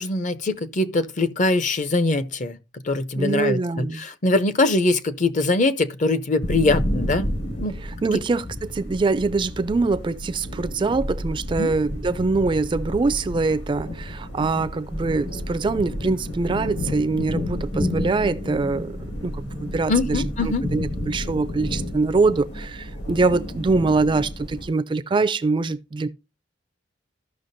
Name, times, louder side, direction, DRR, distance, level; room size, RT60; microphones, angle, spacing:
voice 1, 0.0-7.3 7.6-7.7 11.6-11.7 19.9-20.7, left 2 dB, 45° left, 0.6 m, -22 dB
voice 2, 3.1-4.0 8.0-26.1, right 3 dB, 25° right, 0.3 m, -24 dB
sound 1, 6.4-24.7, left 1 dB, 70° left, 1.9 m, -31 dB
14.5 x 5.7 x 2.6 m
head